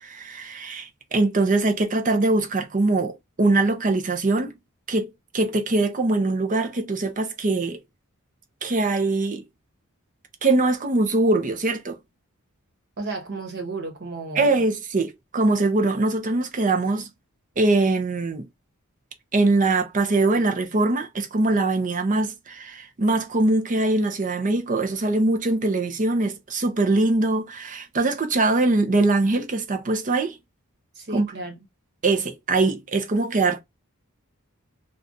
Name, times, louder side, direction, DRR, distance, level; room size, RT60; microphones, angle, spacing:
voice 1, 0.0-4.5 4.9-7.8 8.6-9.4 10.4-12.0 14.4-17.1 17.6-18.4 19.3-30.4 31.1-31.2 32.0-33.6, right 2 dB, 35° right, 0.6 m, -22 dB
voice 2, 13.0-14.7 30.9-31.5, right 3 dB, 50° right, 1.2 m, -33 dB
2.4 x 2.3 x 3.9 m
head